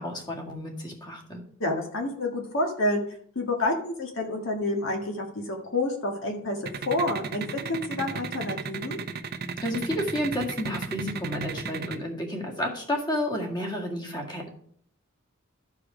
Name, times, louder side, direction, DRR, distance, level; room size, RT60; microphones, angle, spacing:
voice 1, 0.0-1.4 9.6-14.5, left 1 dB, 20° left, 0 dB, 1.9 m, -31 dB
voice 2, 1.6-3.0 3.4-9.0, left 2 dB, 65° left, 1 dB, 1.8 m, -29 dB
sound 1, 6.7-12.0, right 5 dB, 50° right, 0.7 m, -33 dB
13.0 x 4.9 x 4.9 m, 0.63 s
head